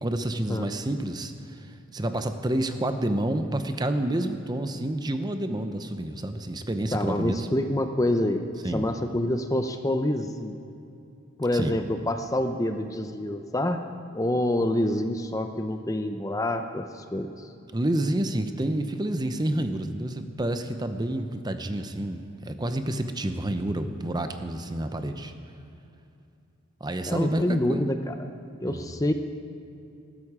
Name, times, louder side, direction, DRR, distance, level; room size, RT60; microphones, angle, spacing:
voice 1, 0.0-7.5 8.6-8.9 11.5-11.7 17.7-25.3 26.8-27.8 28.6-28.9, right 1 dB, 20° right, 8 dB, 0.7 m, -29 dB
voice 2, 6.9-8.4 8.7-10.6 11.4-13.8 14.1-17.5 27.1-28.2 28.6-29.1, left 1 dB, 15° left, 7 dB, 0.6 m, -27 dB
19.5 x 13.0 x 4.9 m, 2.6 s
head